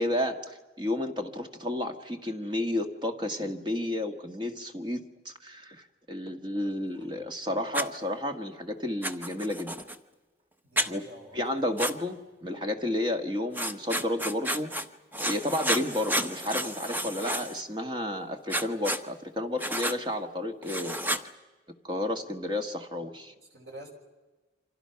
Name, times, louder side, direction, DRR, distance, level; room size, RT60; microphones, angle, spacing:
voice 1, 0.0-9.7 10.9-11.0 11.3-14.7 15.2-21.0 21.8-23.3, left 1 dB, 25° right, 6 dB, 1.7 m, -32 dB
voice 2, 6.6-7.1 10.6-11.9 22.2-22.3 23.5-23.9, right 1 dB, 70° right, 2 dB, 5.7 m, -48 dB
Writing, 7.7-7.9 9.0-10.0 10.8-10.9 11.8-11.9 13.5-14.9 15.1-17.6 18.5-19.0 19.6-20.0 20.6-21.2, right 1 dB, 10° right, 0.9 m, -31 dB
29.0 x 26.0 x 5.8 m, 1.2 s
head